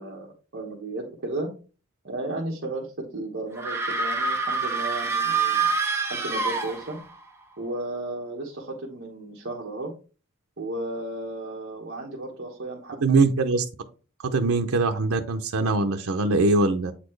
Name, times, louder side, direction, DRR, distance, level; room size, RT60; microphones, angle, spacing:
voice 1, 0.0-1.5 2.0-5.7 6.1-7.0 7.6-9.9 10.6-13.2, right 2 dB, 50° right, -3 dB, 1.2 m, -34 dB
sound 1, 3.6-7.2, right 4 dB, 10° right, 0.8 m, -26 dB
voice 2, 13.0-13.7 14.2-16.9, right 3 dB, 90° right, 5 dB, 0.6 m, -22 dB
7.8 x 4.2 x 3.1 m, 0.35 s
head